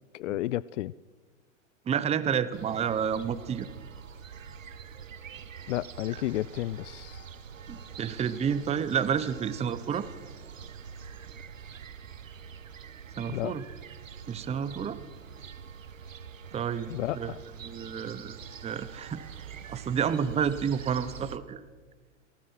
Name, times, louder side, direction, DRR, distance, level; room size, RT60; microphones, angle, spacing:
voice 1, 0.1-0.9 5.7-7.3 13.3-13.5 16.9-17.4, left 15 dB, 70° left, 20 dB, 0.6 m, -32 dB
voice 2, 1.9-3.7 4.4-4.5 7.7-10.1 13.2-13.6 14.3-15.0 16.5-17.3 17.6-21.6, right 7 dB, 15° right, 14 dB, 1.0 m, -30 dB
sound 1, 2.5-21.4, right 7 dB, 90° right, 1.3 m, -45 dB
28.5 x 18.0 x 5.7 m, 1.4 s
hypercardioid pair, 110°, 38 cm